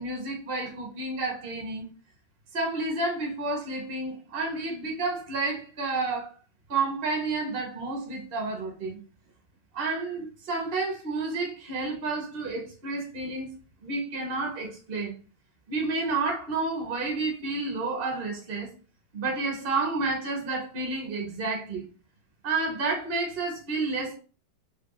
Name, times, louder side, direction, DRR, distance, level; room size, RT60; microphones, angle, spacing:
voice 1, 0.0-1.8 2.5-6.3 6.7-9.0 9.7-13.5 13.8-15.1 15.7-18.7 19.1-21.8 22.4-24.2, right 3 dB, 45° right, 0.8 m, -30 dB
2.9 x 2.5 x 3.8 m
omnidirectional pair, 1.9 m